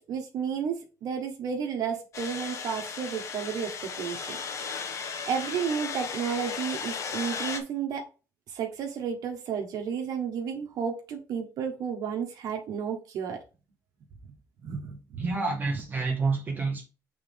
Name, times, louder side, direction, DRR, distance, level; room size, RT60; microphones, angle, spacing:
voice 1, 0.1-4.7 5.3-8.0 8.5-13.4 14.6-15.3 15.7-15.8, right 7 dB, 70° right, 1.5 m, -32 dB
sound 1, 2.1-7.6, left 5 dB, 50° left, 1.1 m, -35 dB
voice 2, 15.2-16.9, right 3 dB, 30° right, 1.6 m, -28 dB
7.3 x 4.0 x 3.7 m
cardioid pair, 125°, 7 cm